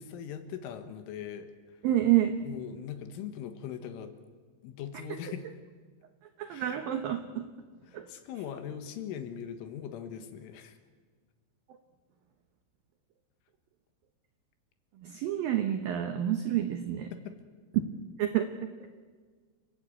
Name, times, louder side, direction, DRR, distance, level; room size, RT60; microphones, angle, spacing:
voice 1, 0.0-1.8 2.4-4.1 4.6-5.5 6.5-6.8 7.9-10.8 17.1-17.4, left 8 dB, 80° left, 8 dB, 3.9 m, -41 dB
voice 2, 1.8-2.4 6.4-7.4 7.9-8.1 15.0-17.1 18.2-18.7, right 11 dB, 80° right, 7 dB, 2.0 m, -28 dB
29.5 x 15.5 x 8.6 m, 1.5 s
omnidirectional pair, 5.7 m